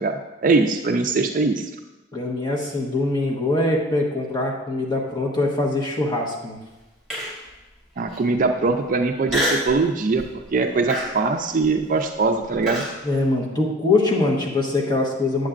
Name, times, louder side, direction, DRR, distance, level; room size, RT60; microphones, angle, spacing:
voice 1, 0.0-1.7 8.0-10.2 10.5-12.8, right 3 dB, 45° right, 5 dB, 0.4 m, -21 dB
voice 2, 2.1-6.6 13.0-15.5, left 2 dB, 25° left, -2 dB, 1.2 m, -23 dB
Human voice, 7.1-7.5 8.1-8.2 9.3-9.7 10.2-10.5 10.9-12.9, equal, ahead, 2.4 m, -27 dB
8.4 x 7.9 x 2.5 m, 1.0 s
head